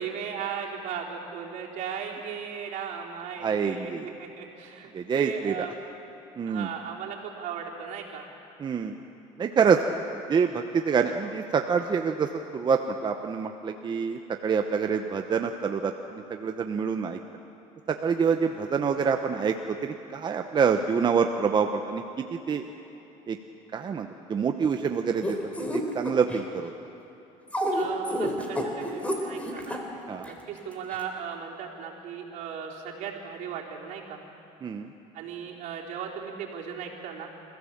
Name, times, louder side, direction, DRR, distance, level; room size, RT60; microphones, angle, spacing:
voice 1, 0.0-5.7 6.5-8.3 27.7-29.8 30.2-34.2 35.1-37.3, right 7 dB, 70° right, -2 dB, 3.9 m, -37 dB
voice 2, 3.4-4.1 4.9-5.7 6.4-6.7 8.6-9.0 9.4-9.8 10.3-17.2 17.9-22.6 23.3-23.4 23.7-25.4 25.7-26.7 30.1-30.3 34.6-34.9, right 6 dB, 35° right, 5 dB, 0.9 m, -26 dB
sound 1, 25.2-26.4 27.5-29.8 30.2-30.3 30.9-31.0, equal, 10° left, 3.3 m, -29 dB
28.0 x 15.5 x 7.3 m, 3.0 s
cardioid pair, 110°, 14 cm